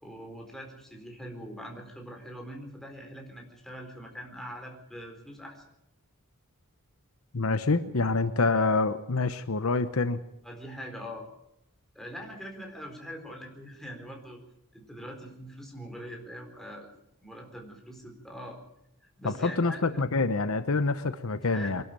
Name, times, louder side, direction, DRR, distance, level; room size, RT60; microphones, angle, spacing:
voice 1, 0.0-5.6 10.4-11.3 11.9-14.4 14.7-16.9 17.2-18.6 19.2-19.8 21.5-21.8, equal, ahead, 1 dB, 4.2 m, -42 dB
voice 2, 7.3-10.2 19.2-21.8, left 3 dB, 70° left, 11 dB, 1.0 m, -26 dB
24.0 x 12.0 x 8.9 m, 0.78 s
head